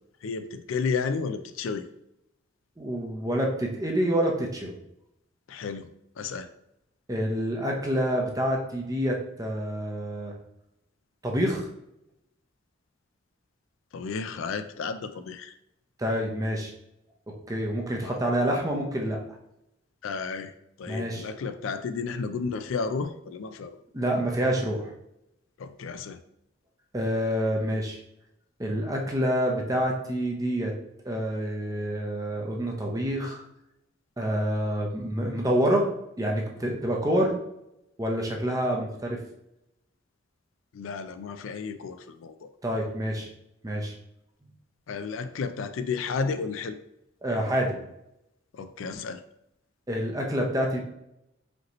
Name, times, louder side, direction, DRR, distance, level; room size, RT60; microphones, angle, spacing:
voice 1, 0.2-1.9 5.5-5.9 6.2-6.5 13.9-15.5 18.0-18.2 20.0-20.5 20.8-23.7 25.6-26.2 40.7-42.5 44.9-46.8 48.5-49.2, left 5 dB, 85° left, 9 dB, 0.4 m, -32 dB
voice 2, 2.8-4.7 7.1-10.3 11.2-11.7 16.0-16.7 17.5-19.2 20.9-21.3 23.9-24.9 26.9-28.0 28.6-30.7 31.0-33.4 34.2-35.9 36.2-37.3 38.0-39.2 42.6-43.3 43.6-43.9 47.2-47.8 49.9-50.8, equal, 20° right, 0 dB, 0.7 m, -27 dB
5.1 x 2.9 x 3.0 m, 0.83 s
head